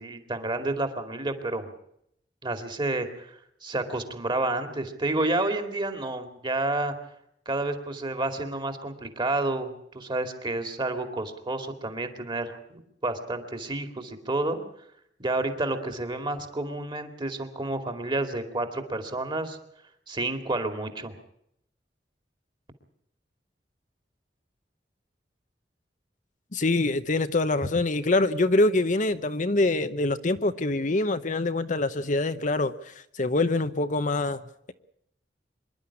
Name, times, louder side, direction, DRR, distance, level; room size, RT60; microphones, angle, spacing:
voice 1, 0.0-1.7 2.4-6.9 7.5-14.6 15.2-19.6 20.1-21.2, right 2 dB, 25° right, 7 dB, 2.6 m, -30 dB
voice 2, 26.5-34.4, left 2 dB, 45° left, 10 dB, 0.9 m, -25 dB
25.5 x 11.5 x 9.9 m, 0.75 s
head